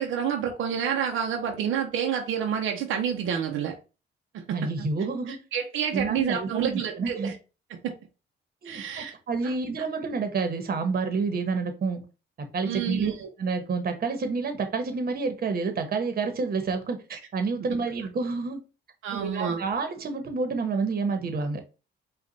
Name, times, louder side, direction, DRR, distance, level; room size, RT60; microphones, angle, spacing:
voice 1, 0.0-3.8 4.3-4.9 5.3-7.3 7.7-7.9 8.6-9.1 9.4-9.5 12.6-13.3 19.0-19.6, right 8 dB, 80° right, 0.8 m, -29 dB
voice 2, 4.5-5.4 5.9-7.3 8.6-12.0 12.5-13.1 13.4-18.6 19.1-21.6, right 4 dB, 50° right, 1.2 m, -29 dB
5.2 x 2.5 x 3.9 m
cardioid pair, 90°, 20 cm